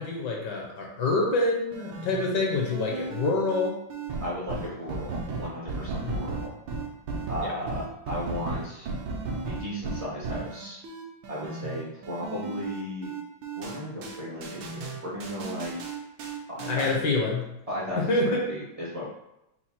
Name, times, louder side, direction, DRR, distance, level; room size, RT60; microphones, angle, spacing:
voice 1, 0.0-3.7 6.0-6.2 7.4-7.5 16.7-17.4 18.0-18.5, left 2 dB, 65° left, -1 dB, 1.3 m, -26 dB
sound 1, 1.7-17.0, right 3 dB, 75° right, 1.4 m, -35 dB
voice 2, 4.2-6.5 7.3-8.9 9.4-10.8 11.3-13.1 13.5-15.8 16.5-16.9 17.7-19.0, equal, 40° right, -8 dB, 0.5 m, -35 dB
4.5 x 2.3 x 4.2 m, 0.86 s
omnidirectional pair, 2.2 m